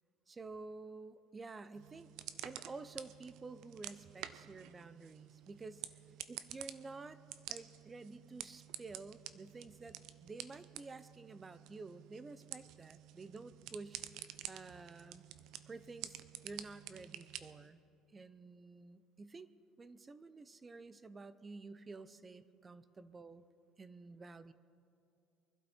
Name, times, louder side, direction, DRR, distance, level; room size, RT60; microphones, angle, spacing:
voice 1, 0.3-2.1 2.4-5.8 6.3-7.2 7.5-15.3 15.7-17.8 18.1-19.5 19.8-23.4 23.8-24.5, right 3 dB, 20° right, 15 dB, 0.6 m, -51 dB
sound 1, 1.8-17.7, right 12 dB, 65° right, 0.6 m, -50 dB
23.5 x 12.0 x 4.3 m, 2.5 s
cardioid pair, 125°, 0 cm